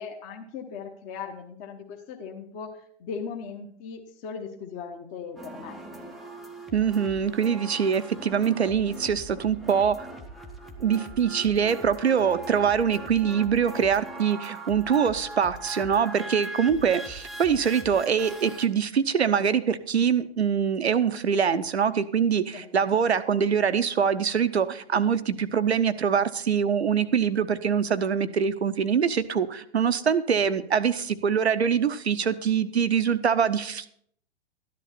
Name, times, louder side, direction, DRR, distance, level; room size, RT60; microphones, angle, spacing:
voice 1, 0.0-5.7 22.5-22.6, left 6 dB, 25° left, 2 dB, 1.0 m, -38 dB
sound 1, 5.4-18.7, right 1 dB, ahead, 0.7 m, -41 dB
voice 2, 6.7-10.1 10.8-33.9, right 7 dB, 70° right, 13 dB, 0.9 m, -24 dB
13.0 x 10.5 x 4.2 m, 0.65 s
figure-of-eight pair, 115°, 34 cm